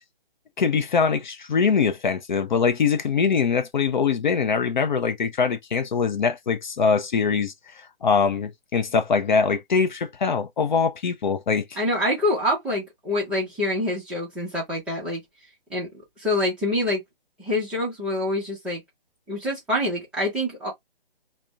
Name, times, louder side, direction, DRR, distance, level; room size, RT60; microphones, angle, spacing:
voice 1, 0.6-11.7, left 5 dB, 50° left, 0.5 m, -23 dB
voice 2, 11.8-15.2 15.7-15.9 16.2-17.0 17.4-18.8 19.3-20.7, left 1 dB, 5° right, 0.6 m, -26 dB
2.5 x 2.1 x 3.2 m
figure-of-eight pair, 145°, 29 cm